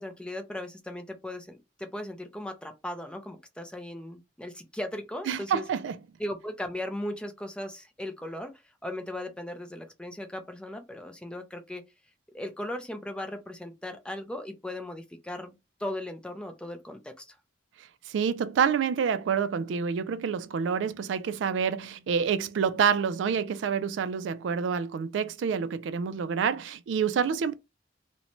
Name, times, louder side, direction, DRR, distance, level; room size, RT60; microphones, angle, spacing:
voice 1, 0.0-5.6 6.2-11.8 12.3-17.4, left 1 dB, 5° left, 0.4 m, -37 dB
voice 2, 5.3-6.0 17.8-27.5, right 6 dB, 70° right, 0.3 m, -28 dB
2.6 x 2.1 x 2.9 m
head